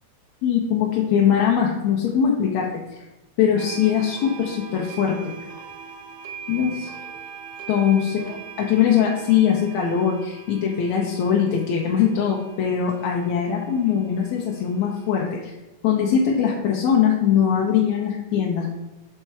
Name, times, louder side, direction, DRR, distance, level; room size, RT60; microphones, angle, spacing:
voice 1, 0.4-2.7 3.0-3.1 3.4-5.2 6.5-6.9 7.7-15.5 15.8-18.7, left 8 dB, 70° left, -2 dB, 1.9 m, -21 dB
sound 1, 3.6-15.2, right 6 dB, 85° right, 2.3 m, -41 dB
6.7 x 4.4 x 4.6 m, 1.1 s
omnidirectional pair, 3.6 m